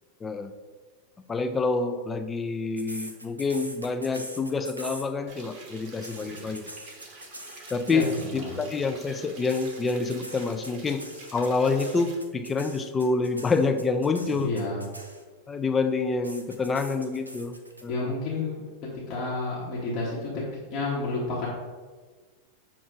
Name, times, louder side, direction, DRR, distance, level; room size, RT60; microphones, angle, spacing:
voice 1, 1.3-6.7 7.7-11.0 11.3-14.5 15.5-17.5 17.8-17.9, left 4 dB, 15° left, 8 dB, 0.3 m, -27 dB
sound 1, 2.8-5.4 5.8-8.5 9.5-15.5 16.2-17.8, right 1 dB, 85° right, 0.5 m, -43 dB
sound 2, 5.3-12.1, right 3 dB, 40° right, 0.8 m, -47 dB
voice 2, 6.1-6.5 7.9-8.5 14.3-14.8 17.9-18.6 18.9-21.5, left 2 dB, 40° left, -6 dB, 1.0 m, -31 dB
5.9 x 2.4 x 3.7 m, 1.4 s
figure-of-eight pair, 90°, 0 cm